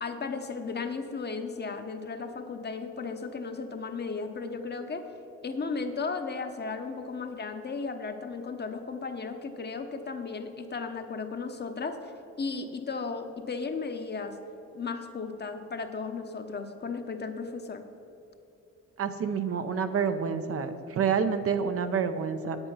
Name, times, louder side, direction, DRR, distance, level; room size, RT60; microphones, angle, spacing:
voice 1, 0.0-5.1 5.4-12.1 12.4-14.4 14.7-17.8, left 4 dB, 35° left, 6 dB, 0.9 m, -35 dB
voice 2, 19.0-22.6, right 6 dB, 50° right, 8 dB, 0.7 m, -28 dB
8.6 x 8.0 x 5.6 m, 2.9 s
cardioid pair, 90°, 30 cm